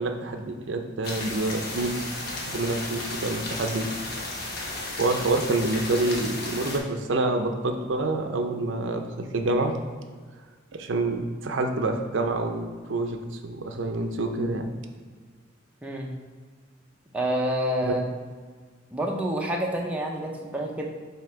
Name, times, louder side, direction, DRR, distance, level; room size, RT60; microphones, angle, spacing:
voice 1, 0.0-2.1 2.5-3.9 5.0-9.8 10.7-13.2 13.4-14.7 17.8-17.9, right 2 dB, 65° right, 5 dB, 0.6 m, -27 dB
sound 1, 1.0-6.8, left 2 dB, 50° left, 1.1 m, -34 dB
voice 2, 15.8-16.1 17.1-18.0 18.9-20.8, right 1 dB, 5° right, -1 dB, 0.6 m, -28 dB
7.4 x 2.8 x 4.6 m, 1.6 s
head